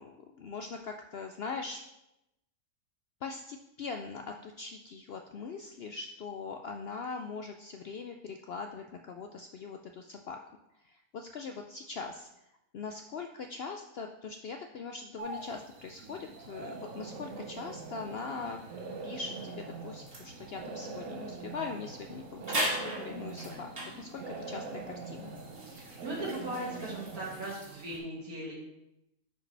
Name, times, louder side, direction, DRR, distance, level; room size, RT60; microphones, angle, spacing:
voice 1, 0.0-1.8 3.2-10.4 10.8-12.3 12.7-18.6 19.0-25.3, left 4 dB, 70° left, 4 dB, 0.6 m, -41 dB
sound 1, 15.2-27.5, right 3 dB, 65° right, 1.2 m, -43 dB
sound 2, 20.1-20.3 21.5-21.6 21.9-22.0 22.4-24.0 24.7-28.0, right 1 dB, 45° right, 2.2 m, -38 dB
voice 2, 25.7-28.5, right 1 dB, 80° right, -4 dB, 2.5 m, -38 dB
9.6 x 4.8 x 3.3 m, 0.87 s
omnidirectional pair, 1.5 m